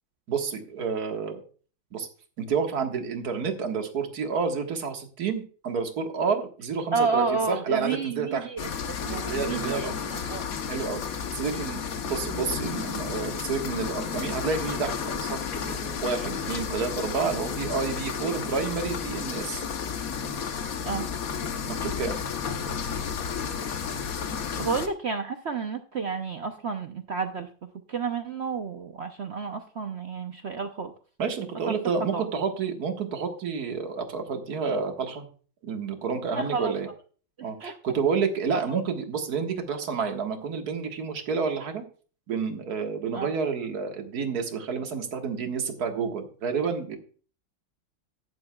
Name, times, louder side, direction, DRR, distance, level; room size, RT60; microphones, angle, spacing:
voice 1, 0.3-1.4 1.9-2.1 2.4-8.5 9.0-10.1 10.7-11.0 11.3-19.6 21.7-22.2 31.2-35.3 35.6-36.9 37.4-41.8 42.3-47.0, right 5 dB, 50° right, 4 dB, 2.0 m, -29 dB
voice 2, 6.9-10.6 11.5-11.6 20.8-21.1 24.6-30.9 31.7-31.8 32.1-32.2 36.3-36.7 37.6-37.7 43.1-43.3, right 5 dB, 70° right, 6 dB, 0.6 m, -31 dB
sound 1, 8.6-24.9, left 6 dB, 50° left, 1.2 m, -32 dB
15.0 x 10.5 x 2.3 m, 0.39 s
omnidirectional pair, 2.2 m